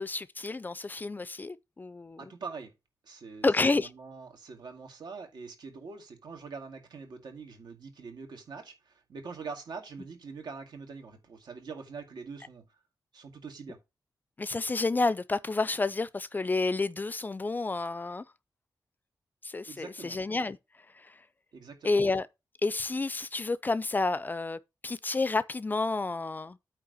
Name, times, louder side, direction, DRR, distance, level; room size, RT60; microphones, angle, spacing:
voice 1, 0.0-2.3 3.4-3.9 14.4-18.3 19.4-20.6 20.9-21.2 21.8-22.3 22.6-26.6, left 3 dB, 25° left, 0.4 m, -30 dB
voice 2, 2.2-2.7 3.0-3.5 3.8-12.6 13.1-13.8 19.7-20.2 21.5-22.0, right 5 dB, 80° right, 2.1 m, -44 dB
8.7 x 3.3 x 6.6 m
wide cardioid pair, 155°, 7 cm